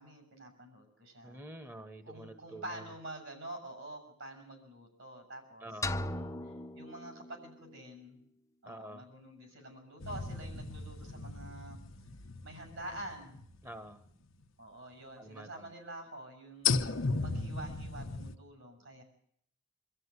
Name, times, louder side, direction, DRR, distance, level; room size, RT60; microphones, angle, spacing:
voice 1, 0.0-1.4 2.0-8.2 8.6-11.8 12.4-13.4 14.6-19.0, right 1 dB, 75° right, 4 dB, 7.2 m, -47 dB
voice 2, 1.2-2.9 5.6-6.0 8.7-9.0 13.6-14.0 15.2-15.7, right 1 dB, 15° right, 8 dB, 1.2 m, -48 dB
sound 1, 5.8-7.8, left 2 dB, 15° left, 0.9 m, -38 dB
sound 2, 10.0-14.0 14.4-14.5 16.6-18.4, left 4 dB, 85° left, 1.1 m, -36 dB
25.0 x 13.0 x 9.8 m, 0.69 s
head